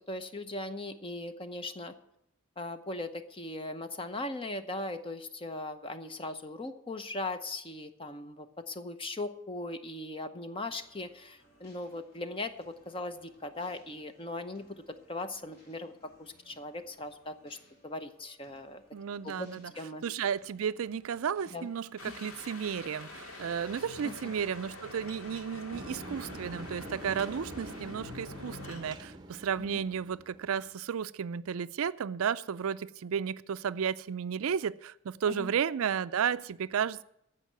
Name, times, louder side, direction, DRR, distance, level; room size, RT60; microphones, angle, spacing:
voice 1, 0.1-1.9 2.6-14.8 15.1-15.9 16.2-17.6 17.8-18.8 19.2-19.5 19.7-20.0 21.5-21.7 22.1-22.2 24.0-24.3 29.7-29.8 35.3-35.5, left 2 dB, 25° left, 0.7 m, -39 dB
sound 1, 10.7-26.2, equal, 45° left, 3.4 m, -64 dB
voice 2, 18.9-19.7 20.0-37.0, right 7 dB, 75° right, 0.4 m, -33 dB
sound 2, 22.0-29.0, left 2 dB, 75° left, 2.0 m, -46 dB
sound 3, 25.7-30.7, right 1 dB, 20° right, 0.8 m, -46 dB
15.0 x 5.5 x 9.2 m
head